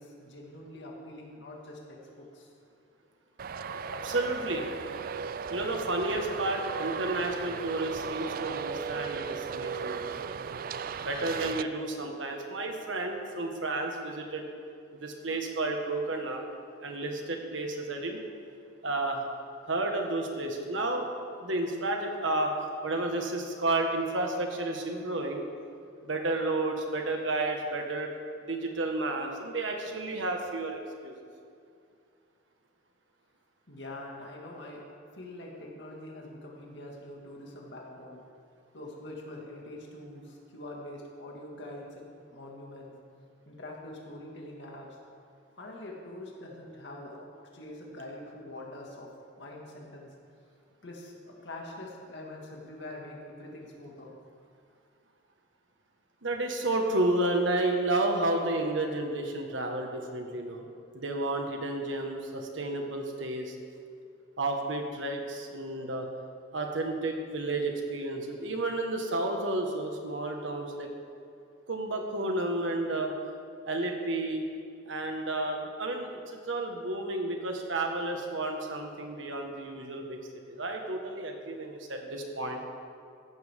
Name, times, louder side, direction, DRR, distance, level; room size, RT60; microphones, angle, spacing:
voice 1, 0.0-2.5 33.7-34.8 35.1-38.2 38.7-42.9 43.5-45.0 45.5-50.1 50.8-54.1, left 1 dB, 65° left, -1 dB, 2.1 m, -44 dB
Traffic noise roadway noise, 3.4-11.6, right 6 dB, 50° right, 0.4 m, -36 dB
voice 2, 3.9-4.7 5.5-10.1 11.0-14.4 14.9-16.4 16.8-18.2 18.8-19.2 19.7-21.1 21.4-22.5 22.8-25.4 26.0-28.1 28.5-31.1 56.2-60.7 60.9-63.5 64.4-66.1 66.5-70.9 71.7-73.1 73.6-74.4 74.9-80.2 80.5-82.6, right 2 dB, 85° right, 2 dB, 1.6 m, -31 dB
15.0 x 12.0 x 3.7 m, 2.4 s
head